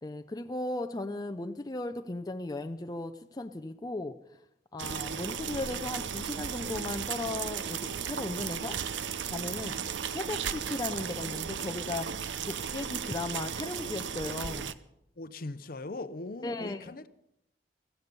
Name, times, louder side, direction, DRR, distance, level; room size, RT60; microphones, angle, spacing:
voice 1, 0.0-4.2 4.7-8.8 9.3-9.8 10.1-12.1 12.4-14.7 16.4-16.9, left 2 dB, 20° left, 0.5 m, -36 dB
sound 1, 4.8-14.7, right 7 dB, 90° right, 0.7 m, -35 dB
voice 2, 15.2-17.1, left 2 dB, 50° left, 0.7 m, -40 dB
15.0 x 15.0 x 5.4 m
head